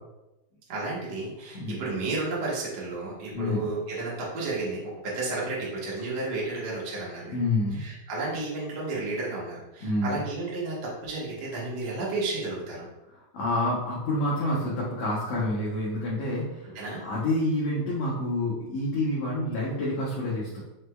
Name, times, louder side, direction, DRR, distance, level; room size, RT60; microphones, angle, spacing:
voice 1, 0.7-7.3 7.7-12.9 16.7-17.0, right 3 dB, 90° right, -6 dB, 0.8 m, -32 dB
voice 2, 3.3-3.7 7.3-7.8 9.8-10.2 13.1-16.7 17.0-20.6, left 1 dB, 75° left, -6 dB, 1.6 m, -28 dB
6.0 x 3.2 x 2.2 m, 1.0 s
omnidirectional pair, 4.0 m